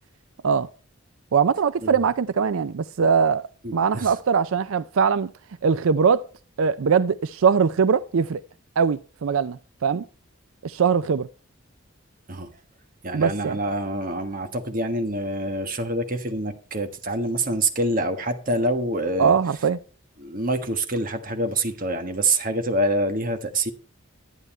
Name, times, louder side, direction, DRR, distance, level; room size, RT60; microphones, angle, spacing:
voice 1, 1.3-5.3 5.6-6.3 6.6-8.4 8.8-10.0 10.6-11.3 13.1-13.6 19.2-19.8, right 6 dB, 75° right, 0.4 m, -21 dB
voice 2, 3.6-4.1 12.3-12.5 13.0-19.4 20.2-23.7, right 1 dB, 40° right, 1.4 m, -26 dB
11.0 x 9.5 x 4.3 m
head